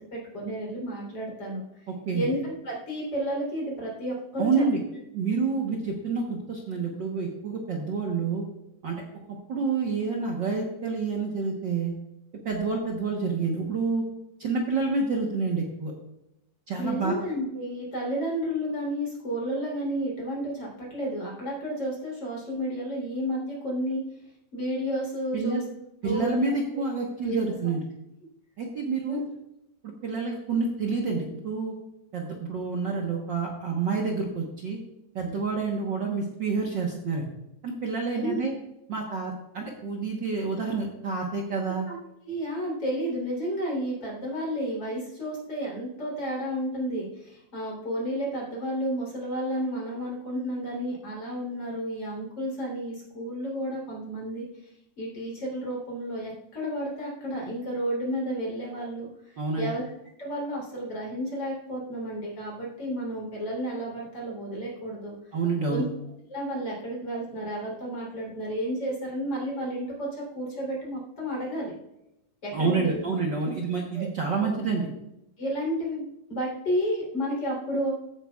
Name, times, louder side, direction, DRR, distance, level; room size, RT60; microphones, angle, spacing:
voice 1, 0.1-1.8 2.1-4.7 16.8-24.0 24.5-25.6 26.0-27.4 29.1-29.2 38.1-38.4 41.9-42.0 42.2-54.4 55.0-59.1 59.5-59.8 60.2-65.1 65.7-65.8 66.3-71.7 72.4-73.0 73.4-73.5 73.9-74.1 75.4-77.9, equal, 35° left, -3 dB, 3.8 m, -31 dB
voice 2, 4.4-4.8 5.1-8.4 8.8-9.0 9.5-11.9 12.4-14.0 14.4-15.9 16.7-17.2 25.3-25.6 26.0-27.8 28.6-29.2 29.8-31.7 32.1-34.8 35.1-37.2 37.6-38.5 38.9-41.9 59.4-59.7 65.3-65.8 72.5-74.9, right 4 dB, 90° right, -1 dB, 1.0 m, -28 dB
14.5 x 8.8 x 2.4 m, 0.85 s
omnidirectional pair, 3.9 m